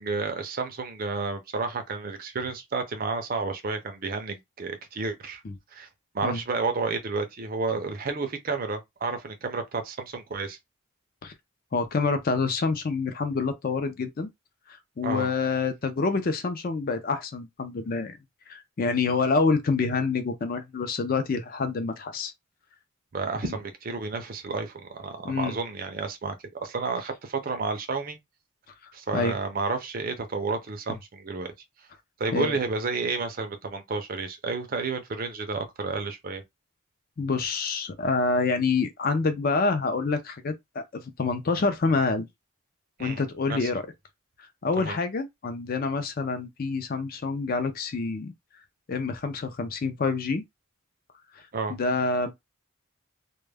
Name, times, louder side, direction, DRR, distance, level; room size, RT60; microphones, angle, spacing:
voice 1, 0.0-5.4 5.7-5.9 6.1-10.6 15.0-15.3 23.1-28.2 28.9-31.5 32.2-36.4 43.0-43.2 43.5-43.7 44.8-45.0 51.5-51.8, right 4 dB, 40° right, 0.4 m, -31 dB
voice 2, 11.7-14.3 14.7-18.2 18.5-22.3 23.4-23.5 25.2-25.5 29.1-29.4 32.3-32.6 37.2-42.3 43.0-43.8 44.6-48.3 48.9-50.4 51.7-52.3, left 4 dB, 40° left, 0.4 m, -27 dB
2.2 x 2.1 x 3.3 m
head